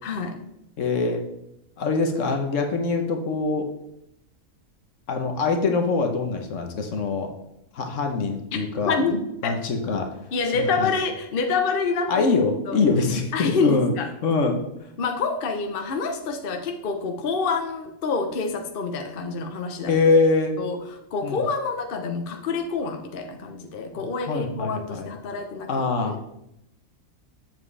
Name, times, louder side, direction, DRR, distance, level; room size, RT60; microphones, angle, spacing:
voice 1, 0.0-0.4 8.8-9.5 10.3-12.3 12.7-12.8 13.3-14.1 15.0-19.9 20.6-20.8 21.1-25.7 26.0-26.2, left 4 dB, 50° left, 5 dB, 0.9 m, -27 dB
voice 2, 0.8-1.2 1.8-3.7 5.1-7.3 7.7-9.0 9.4-10.1 10.5-10.9 12.1-13.9 14.2-14.6 19.9-20.6 21.2-21.4 24.3-25.1 25.7-26.2, left 4 dB, 65° left, 4 dB, 1.3 m, -23 dB
7.6 x 7.3 x 3.3 m, 0.81 s
omnidirectional pair, 1.4 m